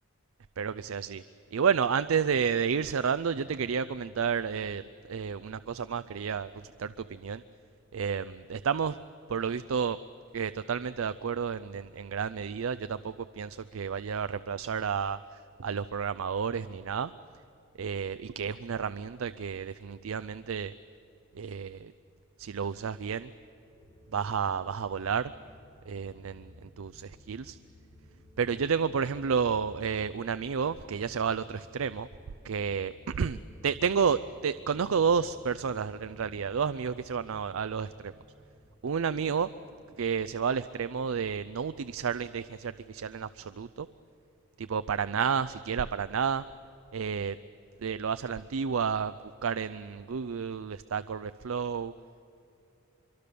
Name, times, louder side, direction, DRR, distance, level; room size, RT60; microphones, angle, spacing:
voice 1, 0.6-1.2 1.5-4.8 5.1-7.4 7.9-9.0 9.3-10.0 10.3-15.2 15.6-17.1 17.8-20.7 21.4-21.9 22.4-23.3 24.1-25.3 25.9-27.6 28.4-32.1 32.4-38.1 38.8-39.5 40.0-43.9 44.6-46.4 46.9-47.4 47.8-51.9, right 6 dB, 70° right, 13 dB, 0.5 m, -31 dB
sound 1, 23.5-39.7, left 1 dB, 5° left, 6.7 m, -55 dB
24.5 x 24.0 x 6.8 m, 2.8 s
head